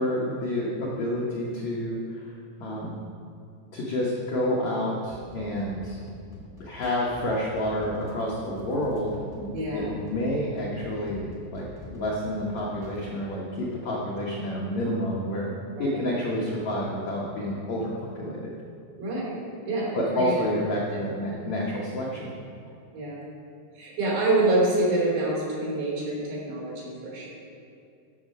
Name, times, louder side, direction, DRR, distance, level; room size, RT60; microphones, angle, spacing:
voice 1, 0.0-2.3 2.6-3.0 3.7-6.0 6.6-15.5 15.8-18.5 19.9-22.3, left 1 dB, 85° left, -4 dB, 1.5 m, -29 dB
sound 1, 5.1-13.1, left 1 dB, 15° left, 0.7 m, -46 dB
voice 2, 9.5-9.9 15.8-16.1 19.0-19.4 19.6-20.3 21.3-21.6 22.9-23.2 23.7-27.3, right 2 dB, 75° right, -5 dB, 5.1 m, -27 dB
12.0 x 6.6 x 5.3 m, 2.4 s
omnidirectional pair, 5.0 m